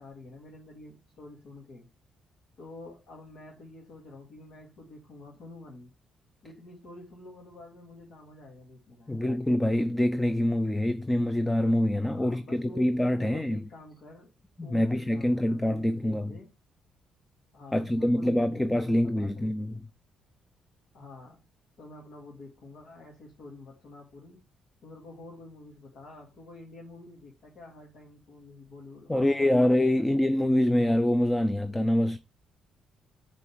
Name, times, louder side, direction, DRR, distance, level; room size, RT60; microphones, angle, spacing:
voice 1, 0.0-1.9 2.6-5.9 6.4-9.3 12.1-14.3 14.6-16.5 17.5-19.8 20.9-21.4 21.8-24.4 24.8-30.3, left 2 dB, 70° left, 2.2 m, -48 dB
voice 2, 9.1-13.6 14.6-16.4 17.7-19.8 29.1-32.2, left 1 dB, 10° left, 0.5 m, -25 dB
6.7 x 4.2 x 4.7 m
cardioid pair, 90°, 0 cm